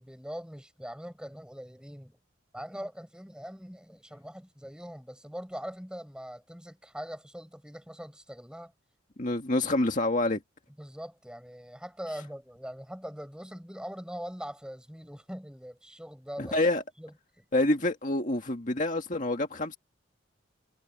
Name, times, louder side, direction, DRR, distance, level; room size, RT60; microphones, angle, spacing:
voice 1, 0.0-2.2 2.5-8.7 10.8-16.6 17.0-17.4, equal, 5° right, 6.7 m, -42 dB
voice 2, 9.2-10.4 16.4-16.8 17.5-19.8, left 2 dB, 40° left, 2.0 m, -27 dB
head